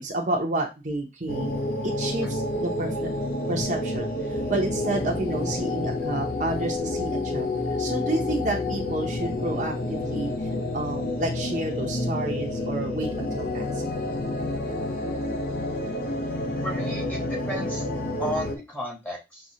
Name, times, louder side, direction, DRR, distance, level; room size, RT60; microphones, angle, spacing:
voice 1, 0.0-1.5 1.8-3.1 3.5-4.1 4.5-10.3 10.7-13.8, right 2 dB, 45° right, 1 dB, 0.7 m, -30 dB
Depressive atmosphere, 1.3-18.6, left 2 dB, 55° left, 0.6 m, -29 dB
voice 2, 16.6-17.8 18.2-19.4, equal, 10° left, -2 dB, 1.1 m, -33 dB
6.1 x 2.3 x 2.7 m, 0.24 s
head